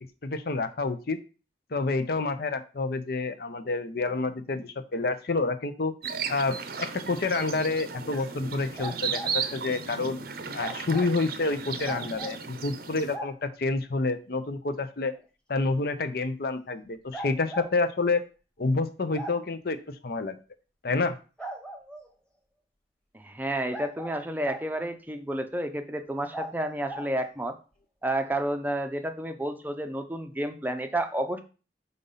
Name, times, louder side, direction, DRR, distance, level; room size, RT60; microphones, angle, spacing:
voice 1, 0.2-1.2 1.7-5.9 6.3-10.2 10.5-15.1 15.5-18.2 18.6-20.4 20.8-21.2, left 3 dB, 60° left, 10 dB, 0.6 m, -28 dB
sound 1, 6.0-13.2, right 6 dB, 55° right, 0.7 m, -35 dB
sound 2, 8.8-9.3 10.6-11.1 11.8-12.4 13.1-13.3 15.1-15.2 17.1-17.7 19.1-19.4 21.4-22.1 23.7-24.7 26.3-26.5 26.9-27.1, right 1 dB, 5° left, 1.1 m, -38 dB
voice 2, 23.1-27.6 28.0-31.4, right 1 dB, 10° right, 7 dB, 0.6 m, -30 dB
5.2 x 4.1 x 5.5 m, 0.34 s
head